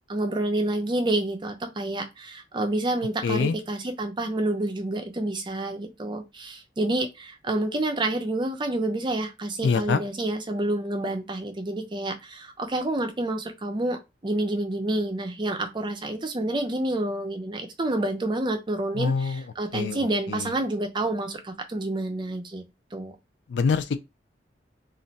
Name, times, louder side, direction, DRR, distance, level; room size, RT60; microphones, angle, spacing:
voice 1, 0.1-22.6 22.9-23.1, right 1 dB, 25° right, 0.5 m, -28 dB
voice 2, 3.2-3.6 9.6-10.0 19.0-19.4 19.7-20.0 20.3-20.4 23.5-24.0, left 5 dB, 85° left, 0.4 m, -24 dB
2.5 x 2.1 x 3.9 m
head